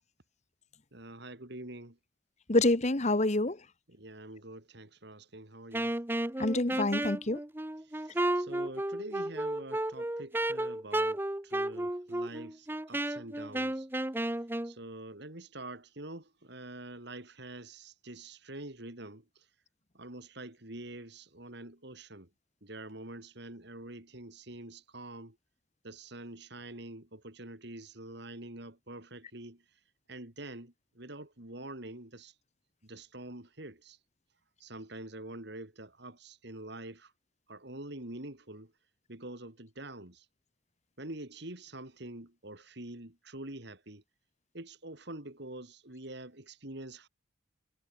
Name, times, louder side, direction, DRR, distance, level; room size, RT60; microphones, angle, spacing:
voice 1, 0.9-2.0 3.9-5.9 7.8-13.9 14.6-19.5 19.9-22.3 22.6-25.4 25.8-29.6 30.1-32.3 32.8-34.0 34.6-37.1 37.5-38.7 39.1-40.3 41.0-44.0 44.5-47.1, right 2 dB, 60° right, 3.4 m, -46 dB
voice 2, 2.5-3.6 6.4-7.4, left 2 dB, 35° left, 1.4 m, -27 dB
Wind instrument woodwind instrument, 5.7-14.7, right 1 dB, 10° right, 0.9 m, -33 dB
head